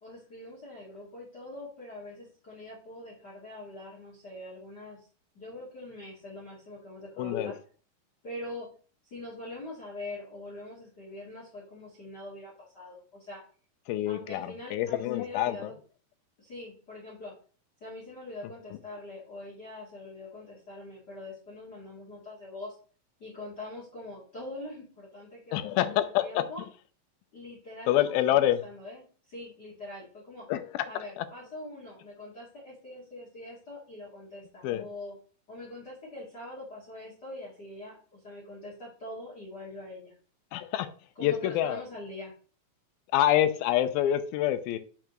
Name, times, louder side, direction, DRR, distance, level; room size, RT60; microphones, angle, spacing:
voice 1, 0.0-5.0 5.3-7.6 8.2-8.7 9.0-13.4 14.0-15.7 16.4-17.3 17.8-22.8 23.2-26.6 27.3-30.5 30.9-35.1 35.5-40.2 41.2-42.3, left 1 dB, 35° left, -5 dB, 2.2 m, -43 dB
voice 2, 7.2-7.5 13.9-15.7 25.5-26.5 27.9-28.6 30.5-30.9 34.6-34.9 40.5-40.9 41.2-41.8 43.1-44.8, left 12 dB, 90° left, 11 dB, 2.5 m, -26 dB
8.8 x 5.9 x 3.0 m, 0.40 s
omnidirectional pair, 4.2 m